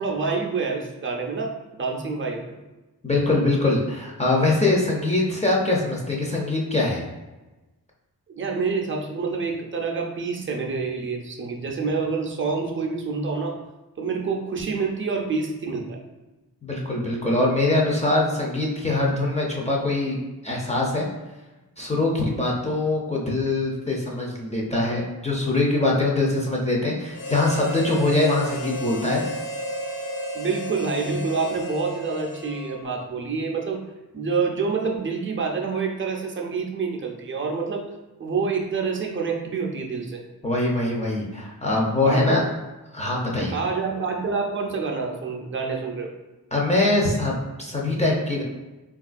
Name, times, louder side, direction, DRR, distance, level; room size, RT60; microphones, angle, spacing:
voice 1, 0.0-2.6 8.3-13.6 14.0-16.0 30.3-33.8 34.1-37.9 38.2-40.2 42.0-42.4 43.5-46.1, right 4 dB, 35° right, 1 dB, 0.5 m, -27 dB
voice 2, 3.0-7.0 16.6-20.2 20.4-21.1 21.8-29.2 40.4-42.4 42.9-43.6 46.5-48.4, left 2 dB, 20° left, -3 dB, 0.5 m, -23 dB
Harmonica, 27.1-32.9, equal, 60° left, 1.0 m, -33 dB
3.5 x 2.4 x 2.4 m, 1.1 s
wide cardioid pair, 75°, 38 cm